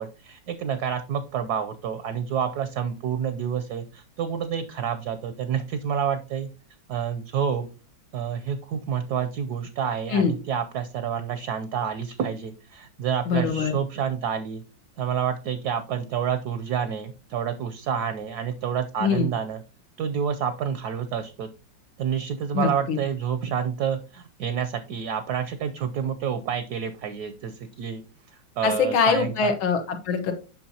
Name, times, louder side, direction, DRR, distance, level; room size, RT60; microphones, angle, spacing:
voice 1, 0.0-6.5 6.9-7.7 8.1-14.6 15.0-19.6 20.0-21.5 22.0-28.0 28.6-29.5, right 8 dB, 70° right, 10 dB, 1.0 m, -28 dB
voice 2, 13.3-13.7 19.0-19.3 22.5-23.0 28.6-30.3, left 5 dB, 90° left, 7 dB, 1.9 m, -23 dB
8.6 x 5.9 x 2.8 m, 0.34 s
omnidirectional pair, 2.1 m